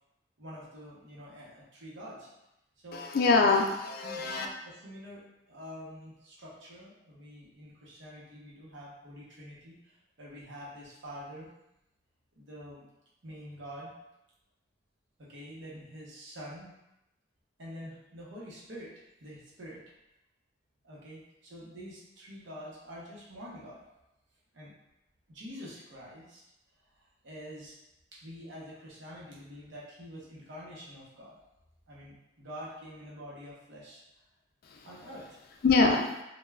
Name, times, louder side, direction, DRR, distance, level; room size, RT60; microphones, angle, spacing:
voice 1, 0.4-2.3 2.8-3.1 4.0-11.5 12.3-12.9 13.2-13.9 15.2-16.7 17.6-18.9 19.2-19.8 20.8-23.8 24.5-24.7 25.3-26.4 26.9-27.8 28.1-31.4 31.9-34.0 34.8-35.4, equal, 75° right, -5 dB, 0.8 m, -46 dB
voice 2, 2.9-4.5 34.7-34.8 35.6-36.1, left 3 dB, 55° left, 2 dB, 0.3 m, -24 dB
3.2 x 2.2 x 2.3 m, 0.89 s
head